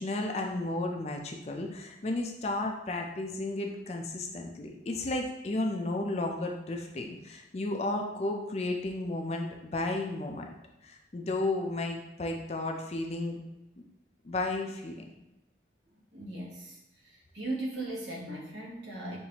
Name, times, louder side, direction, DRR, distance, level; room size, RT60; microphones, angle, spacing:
voice 1, 0.0-10.5 10.8-13.4 14.2-15.0, left 2 dB, 35° left, 2 dB, 0.4 m, -33 dB
voice 2, 16.1-16.8 17.0-19.2, right 2 dB, 85° right, -3 dB, 1.2 m, -38 dB
5.6 x 2.6 x 2.9 m, 0.91 s
head